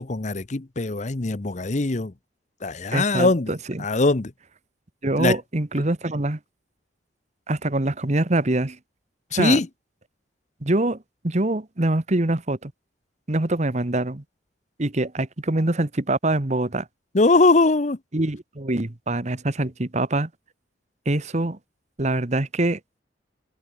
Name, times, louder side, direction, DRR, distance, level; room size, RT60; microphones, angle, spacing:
voice 1, 0.0-2.1 2.6-3.5 3.8-4.3 5.2-5.3 9.3-9.7 17.1-18.0, left 3 dB, 40° left, 0.8 m, -21 dB
voice 2, 2.9-3.9 5.0-6.4 7.5-8.8 9.3-9.6 10.6-12.7 13.3-14.2 14.8-16.9 18.1-20.3 21.0-21.6 22.0-22.8, right 2 dB, 40° right, 1.3 m, -24 dB
head